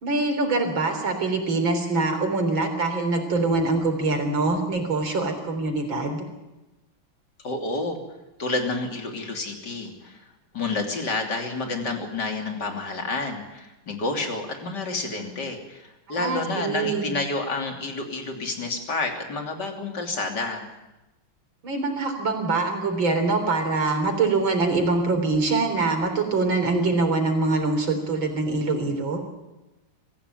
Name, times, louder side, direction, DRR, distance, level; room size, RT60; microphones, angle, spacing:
voice 1, 0.0-6.3 16.1-17.1 21.6-29.2, right 3 dB, 65° right, 5 dB, 4.5 m, -24 dB
voice 2, 7.4-8.0 8.4-10.2 10.5-20.6, left 3 dB, 50° left, 3 dB, 3.7 m, -29 dB
24.5 x 15.5 x 9.2 m, 1.0 s
omnidirectional pair, 2.3 m